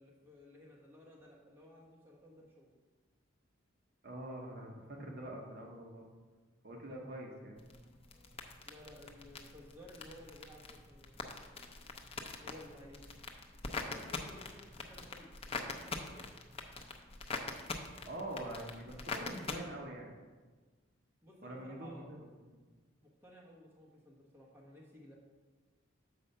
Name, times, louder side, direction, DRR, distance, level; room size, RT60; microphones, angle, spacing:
voice 1, 0.0-2.7 8.6-11.1 12.4-13.0 13.7-16.3 21.2-22.1 23.0-25.1, left 1 dB, 10° right, -3 dB, 1.2 m, -56 dB
voice 2, 4.0-6.0 6.6-7.6 8.1-8.3 18.0-20.1 21.4-22.3 22.5-22.6, right 1 dB, 50° right, -1 dB, 1.0 m, -45 dB
sound 1, 7.6-19.6, left 3 dB, 30° left, 0.6 m, -44 dB
6.9 x 4.7 x 5.5 m, 1.3 s
head